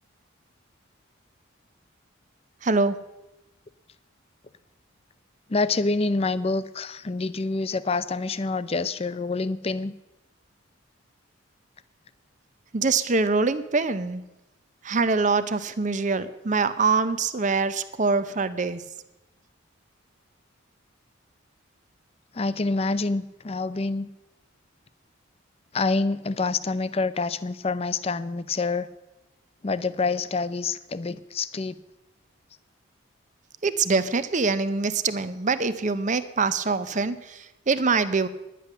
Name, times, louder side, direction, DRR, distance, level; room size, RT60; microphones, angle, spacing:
voice 1, 2.6-3.0 12.7-14.2 14.8-18.8 33.6-38.3, right 4 dB, 40° right, 13 dB, 0.6 m, -24 dB
voice 2, 5.5-9.9 22.3-24.1 25.7-28.9 29.6-31.7, left 3 dB, 30° left, 15 dB, 0.5 m, -27 dB
10.5 x 10.0 x 6.7 m, 0.96 s
head